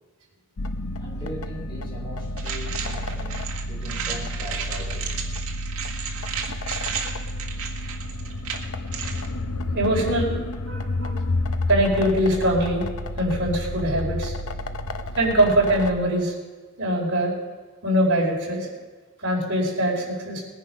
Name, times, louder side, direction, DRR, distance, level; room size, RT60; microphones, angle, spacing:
sound 1, 0.6-15.9, left 1 dB, 80° left, 0.8 m, -30 dB
voice 1, 1.0-5.2 14.5-15.1, equal, 20° left, -4 dB, 4.7 m, -40 dB
sound 2, 2.4-9.3, right 7 dB, 80° right, 1.7 m, -33 dB
voice 2, 9.7-10.3 10.6-11.2 11.7-12.8 13.2-14.3 15.0-16.3 16.8-17.3 17.8-18.7 19.2-20.4, right 1 dB, 55° right, -3 dB, 4.4 m, -22 dB
19.5 x 10.0 x 5.3 m, 1.4 s
head